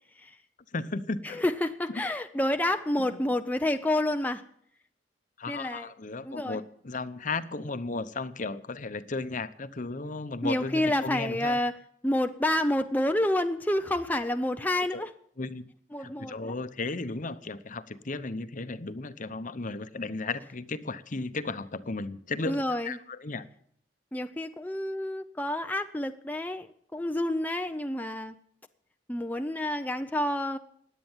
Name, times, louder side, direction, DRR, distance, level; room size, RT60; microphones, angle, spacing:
voice 1, 0.7-1.4 2.0-2.1 5.4-11.6 14.9-15.1 15.4-15.6 16.0-23.4, left 3 dB, 45° left, 13 dB, 0.9 m, -35 dB
voice 2, 1.2-4.4 5.5-5.9 6.2-6.6 10.4-11.8 12.0-15.1 15.9-16.3 22.4-23.0 24.1-28.4 29.1-30.6, left 1 dB, 10° left, 7 dB, 0.6 m, -29 dB
17.0 x 10.5 x 7.3 m, 0.65 s
head